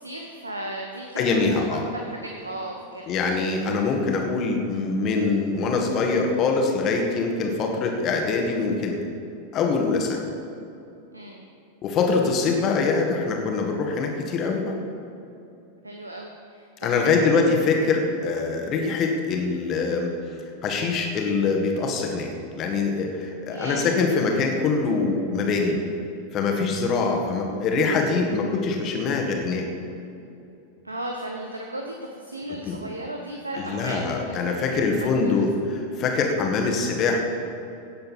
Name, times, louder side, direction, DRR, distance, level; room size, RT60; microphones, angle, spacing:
voice 1, 0.0-3.1 11.1-11.4 15.8-17.4 23.5-24.0 30.8-35.4, right 1 dB, 80° right, 2 dB, 0.9 m, -36 dB
voice 2, 1.2-1.8 3.1-9.0 9.5-10.3 11.8-14.8 16.8-20.1 20.6-25.8 26.3-29.7 32.6-32.8 33.6-37.2, left 4 dB, 35° left, 2 dB, 1.9 m, -24 dB
17.0 x 7.7 x 4.4 m, 2.7 s
figure-of-eight pair, 90°, 0 cm